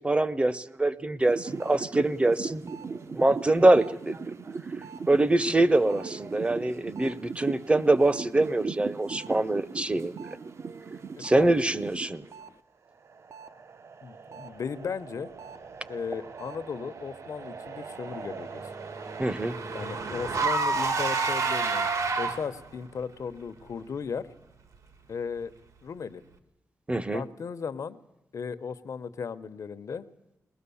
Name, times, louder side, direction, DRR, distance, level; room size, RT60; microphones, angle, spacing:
voice 1, 0.0-2.6 3.1-4.2 5.0-10.1 11.2-12.2 19.2-19.6 26.9-27.2, right 2 dB, 20° right, 15 dB, 0.8 m, -24 dB
sound 1, 1.2-12.5 12.9-19.2, right 5 dB, 55° right, 0.8 m, -39 dB
voice 2, 11.2-11.5 14.0-15.3 15.9-18.6 19.7-21.9 22.2-24.3 25.1-25.5 25.8-26.2 27.1-28.0 28.3-30.0, left 6 dB, 70° left, 11 dB, 0.9 m, -36 dB
Car / Engine, 17.7-22.7, right 4 dB, 70° right, 1.7 m, -29 dB
22.5 x 20.0 x 7.1 m, 0.94 s
wide cardioid pair, 95°, 6 cm